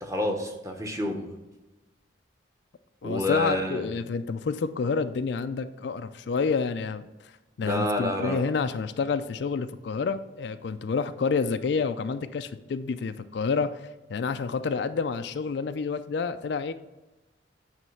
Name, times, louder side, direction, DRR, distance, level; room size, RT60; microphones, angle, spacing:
voice 1, 0.0-1.4 3.0-3.9 7.6-8.4, left 1 dB, 15° right, 2 dB, 1.0 m, -29 dB
voice 2, 3.0-7.3 7.6-16.7, left 5 dB, 60° left, 11 dB, 0.4 m, -29 dB
9.1 x 3.3 x 5.5 m, 1.1 s
head